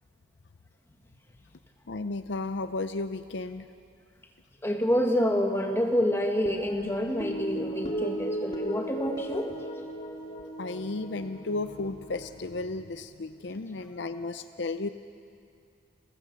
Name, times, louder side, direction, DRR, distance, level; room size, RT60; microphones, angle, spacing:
voice 1, 1.9-3.7 10.6-14.9, left 3 dB, 60° left, 10 dB, 0.6 m, -34 dB
voice 2, 4.6-9.5, equal, 15° left, 3 dB, 1.7 m, -27 dB
sound 1, 6.5-13.0, right 1 dB, 30° left, 2.2 m, -37 dB
29.5 x 15.5 x 7.4 m, 2.4 s
head